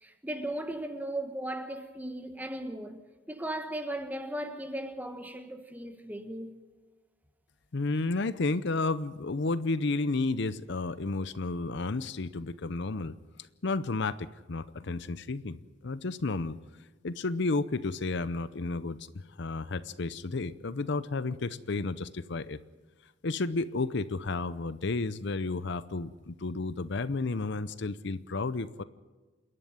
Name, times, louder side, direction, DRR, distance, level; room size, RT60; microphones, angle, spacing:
voice 1, 0.0-3.0 3.3-6.5, right 1 dB, 10° right, 1.4 m, -37 dB
voice 2, 7.7-13.2 13.6-16.6 17.0-19.0 19.4-22.6 23.2-28.8, left 3 dB, 60° left, 0.7 m, -32 dB
28.0 x 11.0 x 9.5 m
head